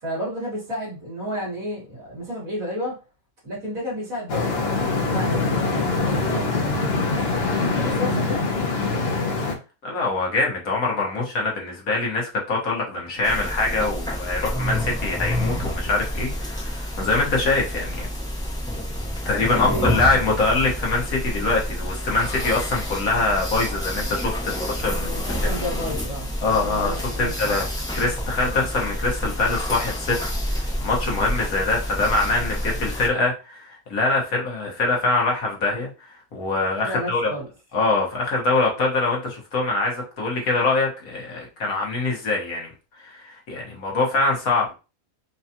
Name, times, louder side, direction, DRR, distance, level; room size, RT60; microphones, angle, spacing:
voice 1, 0.0-3.0 3.4-4.5 4.9-6.8 7.8-8.5 19.4-20.4 24.8-27.6 36.8-37.5, equal, 70° right, -6 dB, 2.1 m, -31 dB
sound 1, 4.3-9.6, left 3 dB, 55° left, 0.8 m, -23 dB
voice 2, 9.8-18.1 19.3-25.1 26.4-27.6 27.9-37.3 37.7-42.7 43.0-44.7, left 3 dB, 75° left, -1 dB, 1.7 m, -24 dB
sound 2, 13.2-33.1, equal, 5° left, 0.7 m, -28 dB
4.7 x 2.4 x 2.8 m, 0.30 s
omnidirectional pair, 1.5 m